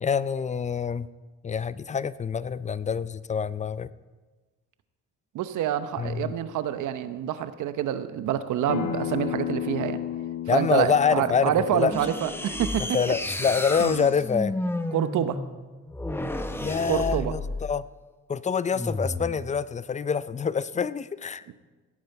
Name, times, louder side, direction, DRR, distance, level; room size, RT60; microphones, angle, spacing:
voice 1, 0.0-1.1 1.4-3.9 6.0-6.3 10.5-11.9 12.8-14.6 16.6-17.8 18.3-21.4, left 6 dB, 25° left, 17 dB, 0.4 m, -26 dB
voice 2, 5.3-10.0 10.5-13.0 13.8-14.1 14.9-15.4 16.9-17.3 21.5-21.6, right 10 dB, 80° right, 11 dB, 0.9 m, -27 dB
Acoustic guitar, 8.7-13.9, left 10 dB, 85° left, 0.9 m, -34 dB
sound 1, 11.9-17.8 18.7-19.4, left 1 dB, 10° left, 0.8 m, -32 dB
16.5 x 9.2 x 4.6 m, 1.3 s
cardioid pair, 90°, 30 cm